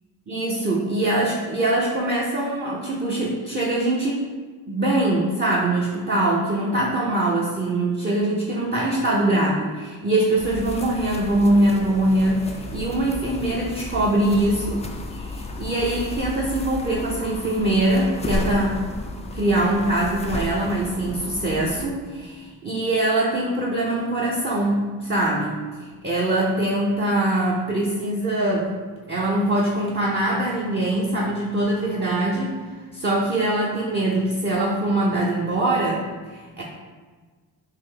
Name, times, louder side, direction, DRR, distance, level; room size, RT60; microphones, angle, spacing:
voice 1, 0.3-4.2 4.7-14.8 15.1-18.8 19.3-28.8 29.1-32.7 32.9-36.6, right 1 dB, 20° right, -5 dB, 0.8 m, -23 dB
sound 1, 10.4-21.9, left 2 dB, 15° left, 0.3 m, -33 dB
3.7 x 2.8 x 3.4 m, 1.4 s
hypercardioid pair, 50°, 50 cm